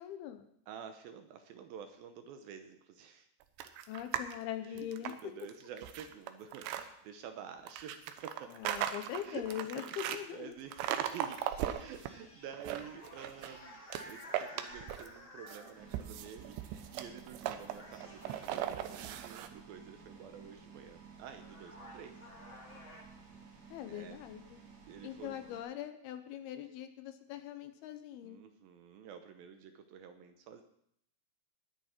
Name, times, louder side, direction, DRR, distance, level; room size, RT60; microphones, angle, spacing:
voice 1, 0.0-0.5 3.9-5.1 8.5-10.5 23.7-24.6 25.0-28.4, left 11 dB, 75° left, 8 dB, 2.6 m, -42 dB
voice 2, 0.7-3.3 4.6-8.5 9.2-9.4 9.8-11.5 11.7-22.2 23.9-24.2 24.9-25.4 28.2-30.6, right 8 dB, 75° right, 7 dB, 2.4 m, -49 dB
sound 1, 3.6-4.4 4.8-6.8 7.7-10.2 10.7-12.1 12.5-13.6 13.9-15.2 15.5-19.5, right 11 dB, 90° right, 3.1 m, -38 dB
sound 2, 10.6-16.2 17.1-17.3 17.6-19.5 20.9-21.0 21.3-23.0, left 1 dB, 20° left, 1.4 m, -54 dB
sound 3, 15.7-25.6, right 5 dB, 55° right, 4.2 m, -55 dB
20.0 x 9.9 x 4.4 m, 0.73 s
omnidirectional pair, 4.8 m